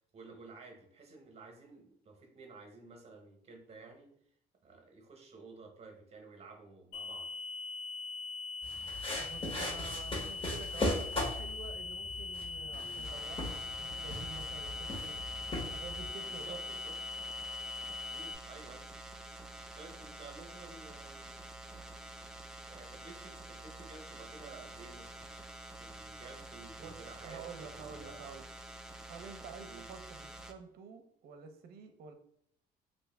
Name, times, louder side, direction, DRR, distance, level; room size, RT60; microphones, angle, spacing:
voice 1, 0.1-4.1 4.6-7.3 12.8-13.0 16.2-16.9 18.1-18.9 19.7-21.4 22.6-25.2 25.8-28.3 29.7-29.8, right 3 dB, 40° right, 2 dB, 1.0 m, -53 dB
sound 1, 6.9-18.3, left 4 dB, 90° left, 0.5 m, -41 dB
sound 2, 8.6-16.1, left 1 dB, 30° left, 1.3 m, -39 dB
voice 2, 9.2-15.2 15.6-16.8 26.8-27.0 27.2-28.5 29.1-32.1, right 6 dB, 65° right, 7 dB, 0.6 m, -49 dB
sound 3, 13.0-30.5, right 2 dB, 5° right, 0.4 m, -48 dB
3.3 x 2.6 x 3.4 m, 0.68 s
cardioid pair, 110°, 17 cm